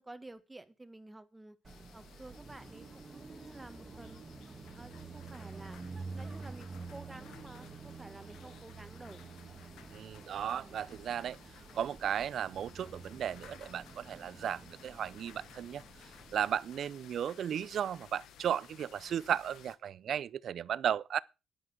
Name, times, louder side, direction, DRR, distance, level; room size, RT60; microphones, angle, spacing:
voice 1, 0.0-1.6 1.9-4.2 4.7-5.8 6.1-9.3 10.5-10.8, right 2 dB, 15° right, 1.7 m, -51 dB
sound 1, 1.6-19.7, left 9 dB, 80° left, 1.3 m, -57 dB
Car passing by, 1.6-16.6, right 4 dB, 35° right, 1.6 m, -49 dB
voice 2, 9.9-11.4 11.8-15.8 16.3-21.2, right 9 dB, 65° right, 0.6 m, -35 dB
10.0 x 10.0 x 6.0 m
cardioid pair, 90°, 0 cm